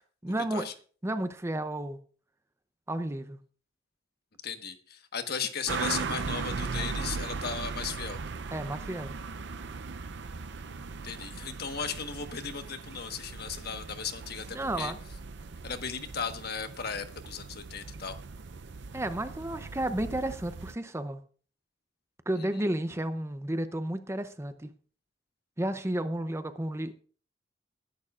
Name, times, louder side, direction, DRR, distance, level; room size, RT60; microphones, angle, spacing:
voice 1, 0.2-0.7 1.0-2.0 2.9-3.4 8.5-9.1 14.5-15.0 18.9-21.2 22.3-24.7 25.6-27.0, right 1 dB, 15° right, 10 dB, 0.6 m, -32 dB
voice 2, 4.4-8.2 11.0-14.9 15.6-18.2, left 6 dB, 55° left, 7 dB, 1.4 m, -36 dB
sound 1, 5.7-20.7, right 4 dB, 65° right, 0.6 m, -38 dB
20.5 x 11.0 x 2.5 m, 0.42 s
head